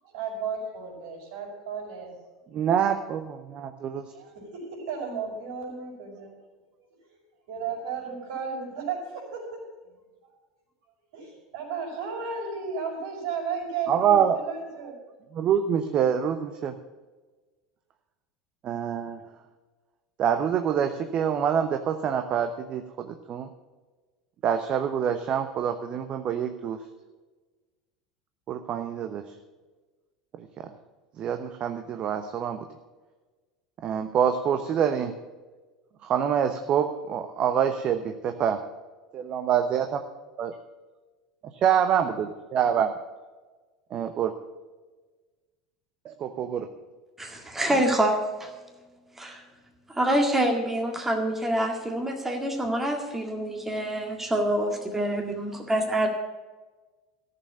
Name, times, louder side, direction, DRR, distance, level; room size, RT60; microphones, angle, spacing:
voice 1, 0.0-2.7 4.1-6.3 7.5-10.0 11.1-15.0, right 5 dB, 65° right, 0 dB, 5.3 m, -34 dB
voice 2, 2.5-4.0 13.9-14.4 15.3-16.7 18.6-19.2 20.2-23.5 24.4-26.8 28.5-29.2 31.2-32.6 33.8-35.1 36.0-38.6 39.1-40.0 40.4-40.5 41.6-42.1 42.5-42.9 43.9-44.3 46.0-46.7, right 8 dB, 40° right, 7 dB, 0.9 m, -26 dB
voice 3, 47.2-48.5 49.2-49.4 49.9-56.1, right 1 dB, 10° right, 2 dB, 1.9 m, -26 dB
14.0 x 6.9 x 8.3 m, 1.3 s
figure-of-eight pair, 75°, 3 cm